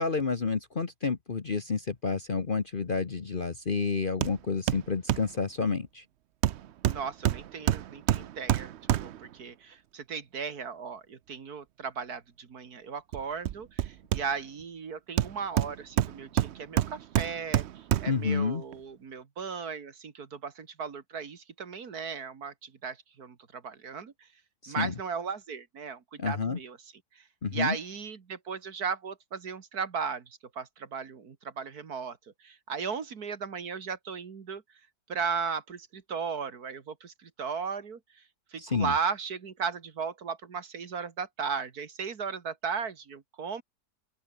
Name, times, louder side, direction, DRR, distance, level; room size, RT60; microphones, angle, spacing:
voice 1, 0.0-6.0 18.1-18.6 24.6-24.9 26.2-26.6 27.4-27.8 38.6-38.9, left 5 dB, 35° left, 1.1 m, -30 dB
Hammer, 4.2-4.4 4.7-5.3 6.4-9.3 13.1-14.6 15.2-18.3 18.7-18.8, right 11 dB, 75° right, 0.6 m, -28 dB
voice 2, 6.8-8.7 9.0-24.3 24.7-27.2 27.5-34.6 35.1-38.2 38.5-43.6, right 6 dB, 60° right, 2.2 m, -36 dB
open air
omnidirectional pair, 1.8 m